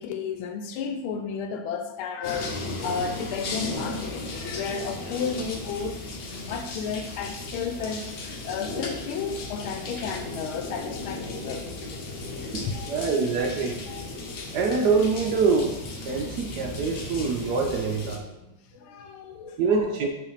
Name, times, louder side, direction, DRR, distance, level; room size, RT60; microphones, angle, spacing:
voice 1, 0.0-11.7 12.7-12.9 13.9-14.0 18.4-18.5 18.8-20.0, left 6 dB, 80° left, 6 dB, 1.5 m, -33 dB
sound 1, 2.2-18.2, left 2 dB, 60° left, 1.5 m, -35 dB
voice 2, 12.5-13.8 14.5-15.8 16.0-18.2 19.6-20.1, right 4 dB, 70° right, 3 dB, 1.0 m, -25 dB
6.3 x 3.3 x 5.6 m, 0.94 s
omnidirectional pair, 2.3 m